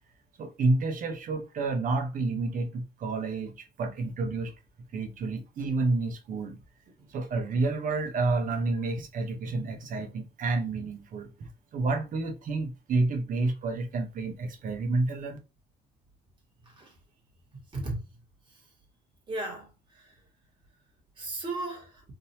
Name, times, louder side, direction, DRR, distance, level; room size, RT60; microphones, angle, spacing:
voice 1, 0.4-4.5 4.9-6.6 7.1-15.4, right 3 dB, 50° right, 1.0 m, -29 dB
voice 2, 19.3-19.7 20.0-20.1 21.2-22.0, right 2 dB, 30° right, 1.9 m, -35 dB
3.8 x 2.7 x 2.8 m
cardioid pair, 110°, 17 cm